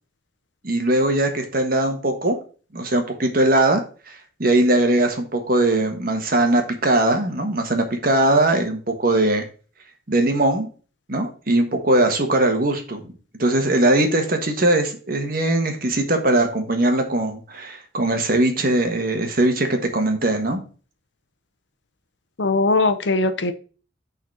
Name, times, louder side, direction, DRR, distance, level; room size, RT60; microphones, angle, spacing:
voice 1, 0.6-2.4 2.7-9.4 10.1-10.7 11.1-13.0 13.4-20.6, right 1 dB, 45° right, 5 dB, 1.5 m, -20 dB
voice 2, 22.4-23.5, left 3 dB, 65° left, 10 dB, 0.9 m, -20 dB
6.7 x 4.1 x 6.3 m, 0.38 s
head